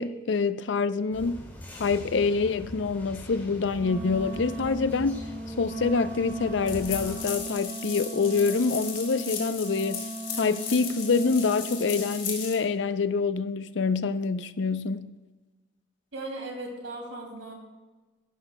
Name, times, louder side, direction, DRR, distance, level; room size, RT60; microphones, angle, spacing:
voice 1, 0.0-1.5 1.8-5.2 5.6-10.1 10.4-15.1, left 4 dB, 70° left, 0.5 m, -26 dB
sound 1, 1.1-7.1, left 1 dB, 10° left, 2.2 m, -42 dB
Wind instrument woodwind instrument, 3.7-12.2, right 2 dB, 30° right, 0.9 m, -38 dB
sound 2, 6.7-12.5, left 6 dB, 45° left, 2.2 m, -36 dB
voice 2, 16.1-17.5, right 2 dB, 85° right, 2.6 m, -37 dB
15.0 x 12.0 x 2.2 m
head